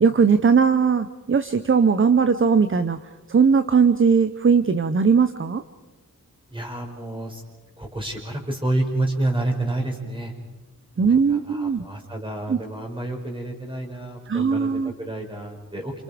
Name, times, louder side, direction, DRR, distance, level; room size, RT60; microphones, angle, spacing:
voice 1, 0.0-3.0 3.3-5.6 11.0-11.8 12.5-12.6 14.3-14.9, right 5 dB, 40° right, 11 dB, 0.9 m, -19 dB
voice 2, 6.5-7.4 7.8-10.3 11.1-15.9, right 2 dB, 15° right, 1 dB, 5.4 m, -29 dB
28.5 x 28.0 x 5.1 m, 1.1 s
wide cardioid pair, 125°, 33 cm